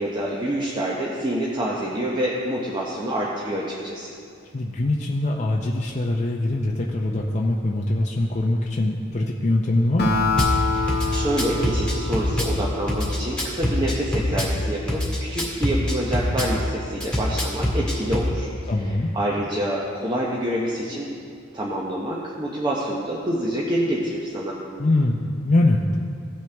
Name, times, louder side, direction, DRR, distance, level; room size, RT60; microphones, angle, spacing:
voice 1, 0.0-4.1 10.7-18.5 18.8-21.1 21.5-24.6, right 1 dB, 25° right, -5 dB, 0.9 m, -27 dB
voice 2, 4.5-10.2 18.7-19.1 24.8-26.0, left 2 dB, 40° left, -2 dB, 0.6 m, -23 dB
Acoustic guitar, 10.0-13.6, left 3 dB, 55° left, 1.0 m, -26 dB
Drum kit / Bass drum, 10.4-10.5 10.9-12.5 12.9-14.5 14.9-16.5 17.0-18.3, left 1 dB, 5° left, 2.0 m, -23 dB
16.5 x 6.2 x 3.4 m, 2.4 s
head